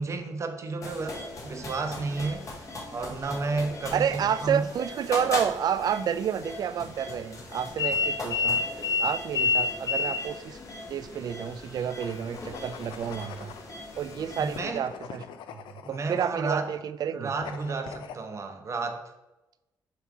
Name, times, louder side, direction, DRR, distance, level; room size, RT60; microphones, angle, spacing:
voice 1, 0.0-2.5 2.9-4.7 14.4-14.8 15.8-16.7 17.1-19.0, right 3 dB, 35° right, 5 dB, 0.8 m, -32 dB
sound 1, 0.8-14.6, left 3 dB, 40° left, 1.5 m, -33 dB
voice 2, 3.9-8.6 9.0-10.6 10.9-13.5 14.0-15.2 15.5-15.6 15.9-17.3, right 8 dB, 55° right, 13 dB, 0.4 m, -30 dB
sound 2, 12.0-13.7 14.5-16.7 17.4-18.2, left 7 dB, 85° left, 0.5 m, -44 dB
7.1 x 2.9 x 4.7 m, 0.97 s
cardioid pair, 100°, 8 cm